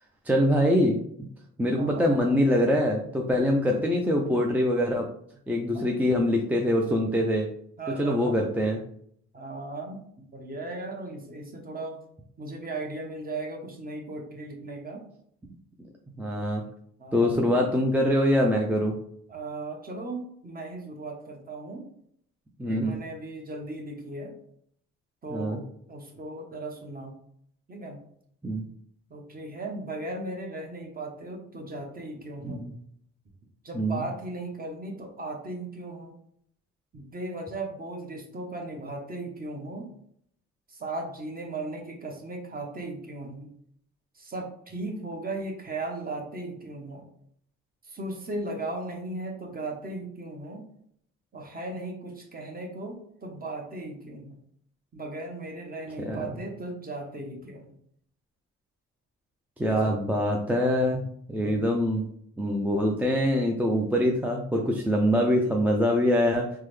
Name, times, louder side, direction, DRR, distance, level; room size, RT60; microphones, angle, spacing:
voice 1, 0.3-1.0 1.6-5.0 5.5-7.5 8.0-8.8 16.2-16.6 17.1-18.9 22.6-23.0 25.3-25.6 28.4-28.6 32.4-32.7 33.7-34.0 56.0-56.2 59.6-62.0 62.4-66.6, equal, 5° right, 0 dB, 0.4 m, -24 dB
voice 2, 1.8-2.1 5.7-5.8 7.8-8.4 9.3-10.0 10.3-12.0 12.4-15.0 17.0-17.4 19.3-21.8 22.7-24.3 25.2-27.1 27.7-28.0 29.1-32.6 33.6-36.1 36.9-39.9 40.7-43.5 44.1-47.0 47.8-50.7 51.3-54.4 54.9-57.8 59.7-60.0 61.4-61.7, right 2 dB, 30° right, 1 dB, 0.9 m, -37 dB
3.5 x 2.1 x 3.1 m, 0.67 s
cardioid pair, 90°, 30 cm